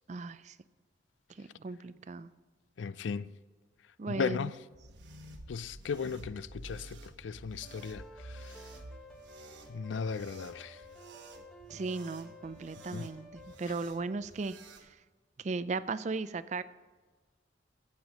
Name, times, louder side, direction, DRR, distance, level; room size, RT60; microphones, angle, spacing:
voice 1, 0.1-0.5 1.4-2.3 4.0-4.5 11.7-14.6 15.4-16.6, right 3 dB, 40° right, 0.4 m, -36 dB
voice 2, 2.8-3.3 4.1-4.5 5.5-8.0 8.3-8.5 9.7-10.8 12.9-13.1, left 5 dB, 80° left, 0.4 m, -36 dB
sound 1, 4.7-14.9, right 2 dB, 80° right, 1.2 m, -51 dB
sound 2, 7.6-13.5, left 1 dB, 5° left, 1.2 m, -53 dB
13.5 x 7.9 x 4.0 m
head